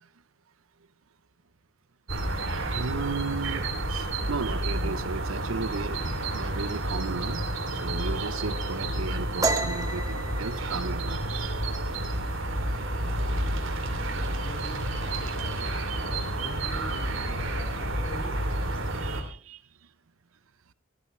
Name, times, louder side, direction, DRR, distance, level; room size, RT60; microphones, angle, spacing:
sound 1, 2.1-19.2, right 1 dB, 70° right, 2.9 m, -30 dB
voice 1, 2.7-7.5 7.8-11.6 19.0-19.6, right 4 dB, 85° right, 0.7 m, -35 dB
sound 2, 9.4-12.8 13.2-13.5 13.9-14.4 14.7-15.4, right 3 dB, 15° right, 1.2 m, -32 dB
voice 2, 14.4-15.7 16.1-18.3, equal, 50° left, 5.6 m, -43 dB
17.0 x 14.5 x 3.2 m
head